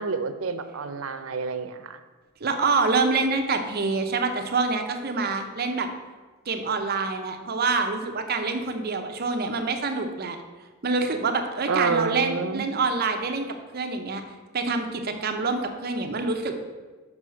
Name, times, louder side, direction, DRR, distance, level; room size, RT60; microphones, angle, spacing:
voice 1, 0.0-2.0 11.7-12.7, right 4 dB, 90° right, 10 dB, 0.6 m, -28 dB
voice 2, 2.4-5.9 6.5-10.4 10.8-13.5 13.7-14.2 14.5-16.6, right 4 dB, 50° right, 5 dB, 0.7 m, -26 dB
6.2 x 5.5 x 6.2 m, 1.3 s
head